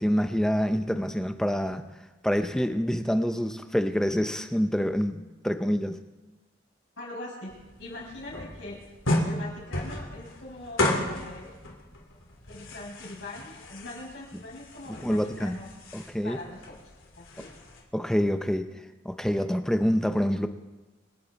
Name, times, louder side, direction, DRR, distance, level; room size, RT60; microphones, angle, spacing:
voice 1, 0.0-1.8 2.2-6.0 14.9-15.6 15.9-16.4 17.9-18.7 19.0-20.5, equal, 5° left, 8 dB, 0.6 m, -26 dB
voice 2, 7.0-7.5 7.8-8.8 9.2-11.5 12.5-15.7 16.2-16.7 17.1-17.6, left 2 dB, 65° left, -4 dB, 6.3 m, -42 dB
sound 1, 7.5-17.8, left 1 dB, 85° left, 3.0 m, -34 dB
26.5 x 8.9 x 4.1 m, 1.2 s
head